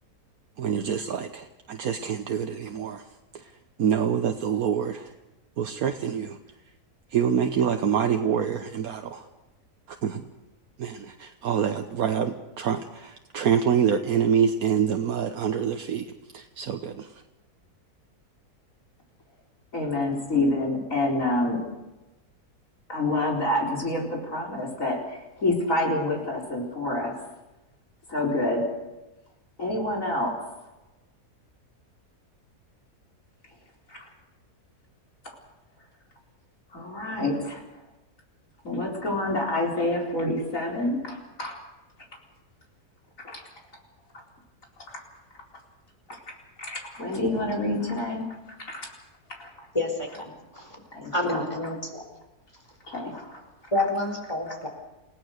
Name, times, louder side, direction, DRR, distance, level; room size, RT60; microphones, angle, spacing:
voice 1, 0.6-3.0 3.3-3.5 3.8-5.1 5.6-6.4 7.1-9.3 9.9-10.2 10.8-16.1 16.3-17.2, right 7 dB, 70° right, 6 dB, 1.4 m, -26 dB
voice 2, 19.7-21.6 22.9-27.2 28.1-28.7 29.6-30.4 33.9-34.0 36.7-37.6 38.6-41.6 43.2-43.4 46.6-48.3 48.7-48.9 49.4-49.5 50.9-51.4 52.9-53.4, left 2 dB, 55° left, 0 dB, 4.8 m, -27 dB
voice 3, 49.7-50.8 51.1-52.0 53.7-54.7, left 1 dB, 20° left, 2 dB, 4.4 m, -28 dB
29.0 x 17.0 x 6.6 m, 1.0 s
omnidirectional pair, 1.6 m